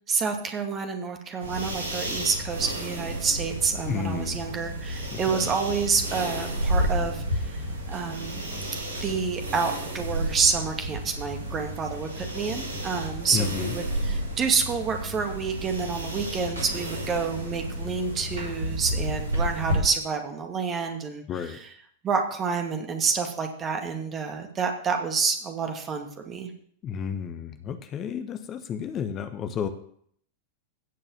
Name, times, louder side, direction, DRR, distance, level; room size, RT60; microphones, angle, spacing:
voice 1, 0.1-7.6 7.9-8.4 9.0-21.7 22.0-26.5, right 5 dB, 25° right, 4 dB, 2.3 m, -28 dB
sound 1, 1.4-19.8, right 1 dB, 70° right, 6.9 m, -31 dB
voice 2, 3.9-4.4 5.1-5.5 13.3-13.7 21.3-21.6 26.8-29.7, left 7 dB, 30° left, 8 dB, 1.2 m, -31 dB
16.0 x 5.5 x 7.3 m, 0.62 s
figure-of-eight pair, 90°, 0 cm